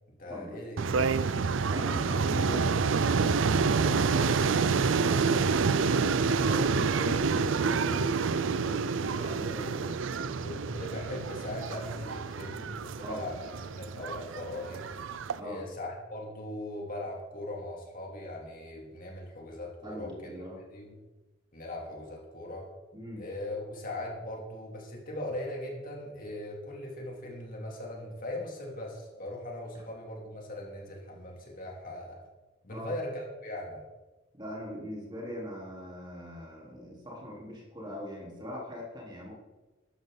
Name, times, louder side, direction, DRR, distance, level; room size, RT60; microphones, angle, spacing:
voice 1, 0.2-1.1 10.4-14.8 15.4-21.0 21.5-22.7 23.2-32.2 32.6-33.8, left 1 dB, 45° left, -1 dB, 3.0 m, -39 dB
sound 1, 0.8-15.4, right 5 dB, 70° right, 0.5 m, -28 dB
voice 2, 1.7-4.3 4.8-6.1 6.5-10.4 13.0-13.2 15.3-15.6 19.8-20.6 22.9-23.2 32.7-32.9 34.3-39.3, equal, 25° right, -4 dB, 3.9 m, -41 dB
13.0 x 12.0 x 4.0 m, 1.1 s
head